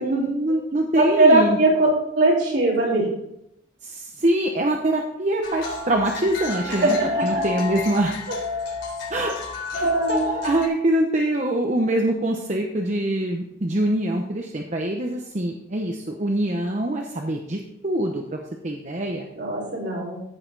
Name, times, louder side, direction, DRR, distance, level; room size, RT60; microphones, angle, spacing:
voice 1, 0.0-1.6 3.8-7.0 7.2-8.2 9.1-9.4 9.7-19.3, right 1 dB, 40° right, 2 dB, 0.8 m, -24 dB
voice 2, 0.9-1.9 2.2-3.1 6.7-7.4 9.8-10.3 19.4-20.2, right 2 dB, 65° right, -6 dB, 4.6 m, -20 dB
sound 1, 5.4-10.7, left 3 dB, 70° left, 4.0 m, -30 dB
15.0 x 6.6 x 4.0 m, 0.81 s
head